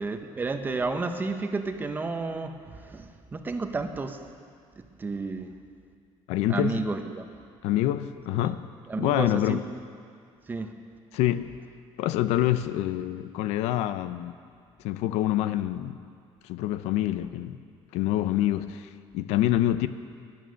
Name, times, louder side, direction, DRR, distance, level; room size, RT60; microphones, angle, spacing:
voice 1, 0.0-4.2 5.0-5.5 6.5-7.3 8.4-8.5 8.9-9.6 10.5-10.7, right 3 dB, 20° right, 7 dB, 0.9 m, -31 dB
voice 2, 6.3-6.9 7.6-8.7 9.0-9.6 11.1-11.5 12.0-14.3 14.8-16.0 16.4-17.6 17.9-19.9, left 13 dB, 90° left, 12 dB, 0.6 m, -26 dB
22.0 x 8.7 x 6.4 m, 2.3 s
cardioid pair, 160°, 11 cm